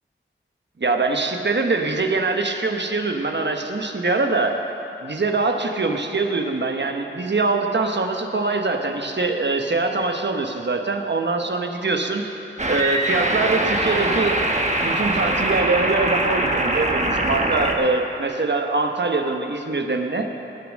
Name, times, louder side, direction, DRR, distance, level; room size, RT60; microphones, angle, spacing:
voice 1, 0.8-4.5 5.0-12.2 12.7-14.4 14.8-20.3, right 3 dB, 60° right, 4 dB, 1.1 m, -23 dB
sound 1, 12.6-17.7, right 1 dB, 35° right, 1.2 m, -22 dB
18.0 x 7.0 x 6.4 m, 3.0 s
wide cardioid pair, 55°, 21 cm